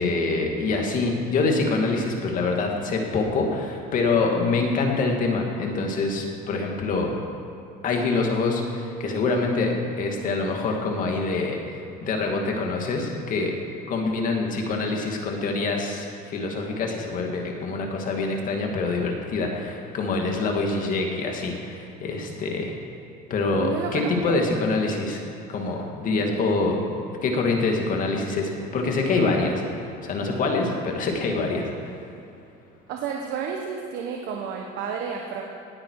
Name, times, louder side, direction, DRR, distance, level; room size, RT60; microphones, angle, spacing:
voice 1, 0.0-7.2 7.8-11.6 12.0-13.5 13.9-22.7 23.3-26.8 27.2-29.6 30.0-31.7, left 3 dB, 45° left, 1 dB, 2.3 m, -25 dB
voice 2, 23.6-24.4 32.9-35.4, right 6 dB, 65° right, 1 dB, 1.4 m, -31 dB
19.0 x 9.6 x 4.8 m, 2.6 s
cardioid pair, 130°, 19 cm